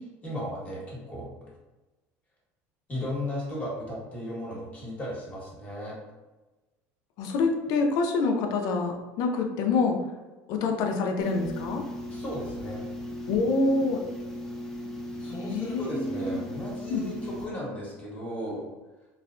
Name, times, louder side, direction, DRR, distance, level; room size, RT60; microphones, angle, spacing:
voice 1, 0.2-1.5 2.9-5.9 12.1-12.9 15.2-18.6, equal, 20° left, -5 dB, 1.2 m, -35 dB
voice 2, 7.2-10.0 10.5-11.8 13.3-14.0 15.3-16.4 16.9-17.0, left 3 dB, 65° left, 3 dB, 0.5 m, -26 dB
sound 1, 11.2-17.5, left 1 dB, 5° left, 0.4 m, -37 dB
3.1 x 2.1 x 2.4 m, 1.1 s
supercardioid pair, 115°, 7 cm